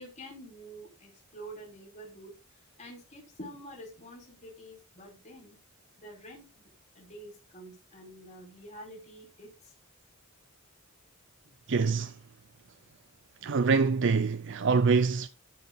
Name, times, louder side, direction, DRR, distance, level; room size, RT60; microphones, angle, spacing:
voice 1, 0.0-2.3 2.8-5.6 6.0-6.7 6.9-9.5, right 1 dB, 35° left, 4.9 m, -47 dB
voice 2, 11.7-12.1 13.4-15.3, right 4 dB, 60° right, 0.6 m, -25 dB
14.5 x 6.1 x 4.0 m
head